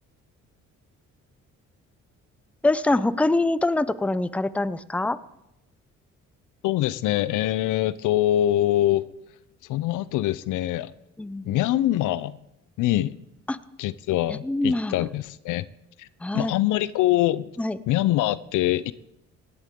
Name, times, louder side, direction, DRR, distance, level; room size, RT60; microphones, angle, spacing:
voice 1, 2.6-5.2 11.2-11.6 13.5-13.6 14.3-14.9 16.2-16.5 17.6-17.8, left 2 dB, 5° left, 0.5 m, -24 dB
voice 2, 6.6-9.1 9.7-10.9 11.4-12.4 12.8-13.2 13.8-15.6 16.0-16.1 16.3-17.5 17.9-18.9, left 14 dB, 85° left, 0.6 m, -24 dB
17.5 x 11.5 x 3.7 m
cardioid pair, 90°, 30 cm